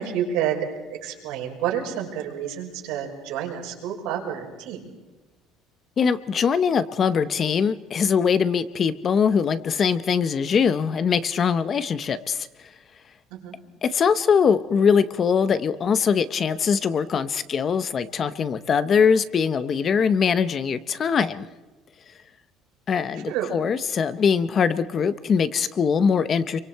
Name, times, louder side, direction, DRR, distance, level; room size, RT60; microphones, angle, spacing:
voice 1, 0.0-4.9 13.3-13.6 23.1-23.6, right 9 dB, 80° right, 0 dB, 5.5 m, -29 dB
voice 2, 6.0-12.5 13.8-21.5 22.9-26.6, left 6 dB, 25° left, 13 dB, 0.7 m, -22 dB
27.5 x 24.0 x 4.6 m, 1.2 s
cardioid pair, 180°, 0 cm